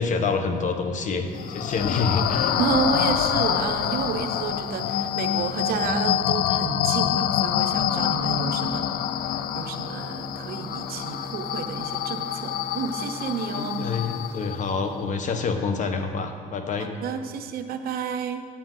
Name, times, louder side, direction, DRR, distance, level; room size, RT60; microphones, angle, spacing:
voice 1, 0.0-2.6 13.5-16.9, left 4 dB, 45° left, 6 dB, 1.0 m, -27 dB
sound 1, 0.7-15.2, left 1 dB, 30° left, 2.3 m, -42 dB
sound 2, 1.3-14.8, left 11 dB, 65° left, 0.4 m, -26 dB
voice 2, 2.6-8.9 9.2-13.9 16.8-18.5, right 6 dB, 65° right, 6 dB, 0.7 m, -30 dB
9.6 x 8.6 x 3.9 m, 2.3 s
cardioid pair, 110°, 17 cm